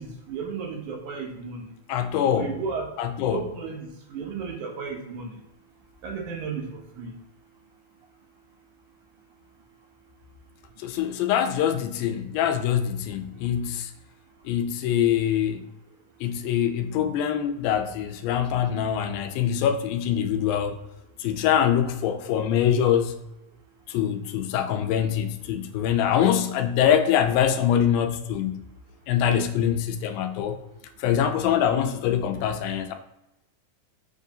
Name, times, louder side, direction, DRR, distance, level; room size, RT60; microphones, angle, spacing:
voice 1, 0.0-1.6 2.4-2.9 3.3-5.3 6.0-7.1, right 5 dB, 75° right, 1.9 m, -34 dB
voice 2, 1.9-2.6 3.0-3.4 10.8-13.9 14.5-15.6 16.2-20.8 21.2-23.2 23.9-28.6 29.1-30.6 31.0-32.9, left 9 dB, 90° left, 2.3 m, -24 dB
6.8 x 2.7 x 2.7 m
omnidirectional pair, 4.0 m